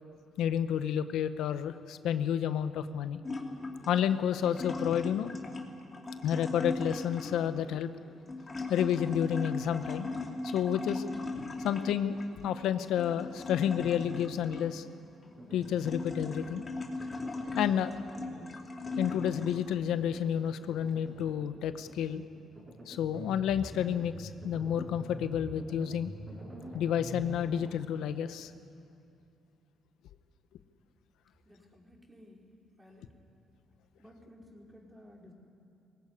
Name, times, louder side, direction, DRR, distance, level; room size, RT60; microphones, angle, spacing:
voice 1, 0.4-3.2 3.9-5.3 6.2-7.9 8.7-10.1 10.5-11.0 11.6-14.8 15.5-16.7 17.6-17.9 19.0-22.2 22.9-26.1 26.7-28.5, left 9 dB, 85° left, 11 dB, 0.8 m, -30 dB
sound 1, 3.2-19.8 20.3-21.3, left 3 dB, 30° left, 2.7 m, -39 dB
sound 2, 15.4-16.0 16.3-16.6 17.0-17.8 18.2-18.5 18.8-19.7 20.0-20.4 20.7-21.5 21.9-22.2 22.6-27.7, right 1 dB, 30° right, 5.9 m, -46 dB
voice 2, 31.4-32.5 32.8-33.1 34.0-35.3, left 1 dB, 15° right, -1 dB, 4.6 m, -55 dB
20.0 x 17.5 x 9.7 m, 2.7 s
cardioid pair, 90°, 0 cm